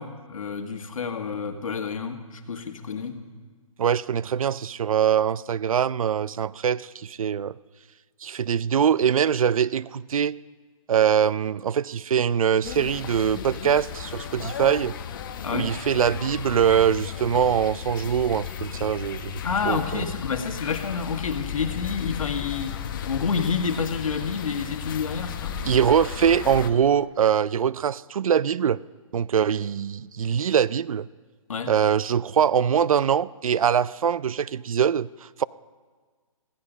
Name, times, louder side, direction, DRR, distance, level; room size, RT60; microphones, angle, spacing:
voice 1, 0.0-3.3 15.4-15.8 19.4-25.6 31.5-31.8, left 5 dB, 70° left, 6 dB, 1.8 m, -29 dB
voice 2, 3.8-7.5 8.2-10.4 10.9-14.9 15.5-20.0 25.6-28.8 29.1-31.1 31.7-35.4, right 8 dB, 70° right, 20 dB, 0.5 m, -23 dB
sound 1, 12.6-26.7, left 8 dB, 35° left, 1.0 m, -35 dB
15.5 x 15.5 x 5.2 m, 1.5 s
hypercardioid pair, 155°, 18 cm